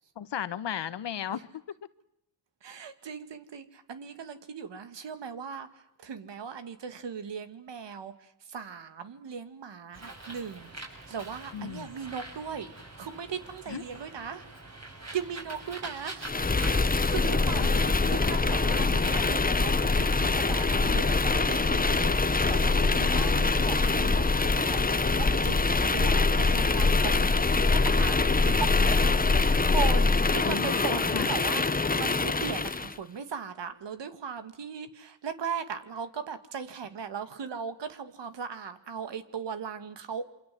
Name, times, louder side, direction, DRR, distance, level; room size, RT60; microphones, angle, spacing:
voice 1, 0.2-1.5 11.5-11.9 13.7-13.8 17.6-17.8 18.7-19.4 23.0-23.2 30.4-31.3, left 9 dB, 70° left, 15 dB, 1.3 m, -36 dB
voice 2, 2.6-12.7 13.0-14.5 15.1-16.3 16.9-21.2 21.5-29.2 29.5-40.2, right 6 dB, 70° right, 10 dB, 2.4 m, -38 dB
Bird, 9.9-23.9, right 2 dB, 35° right, 7.5 m, -45 dB
sound 1, 16.2-32.9, left 3 dB, 20° left, 1.0 m, -24 dB
27.0 x 25.0 x 7.8 m, 0.80 s
cardioid pair, 65°, 44 cm